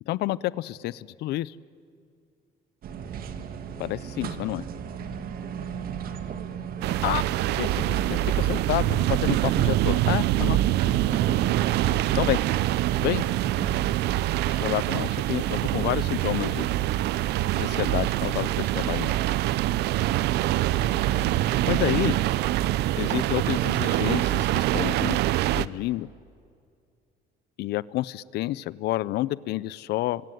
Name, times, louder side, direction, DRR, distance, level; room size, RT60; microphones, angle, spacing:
voice 1, 0.1-1.5 3.8-4.6 7.0-7.3 7.6-10.6 12.1-12.4 13.0-13.2 14.6-16.7 17.5-19.1 21.7-22.2 23.0-25.2 25.5-26.1 27.6-30.2, left 16 dB, 80° left, 20 dB, 0.6 m, -29 dB
sound 1, 2.8-13.8, right 7 dB, 60° right, 1.9 m, -36 dB
voice 2, 5.0-6.2 10.9-11.9, right 5 dB, 30° right, 16 dB, 0.9 m, -41 dB
sound 2, 6.8-25.7, right 14 dB, 80° right, 0.6 m, -25 dB
26.5 x 24.0 x 9.3 m, 2.3 s
cardioid pair, 110°, 17 cm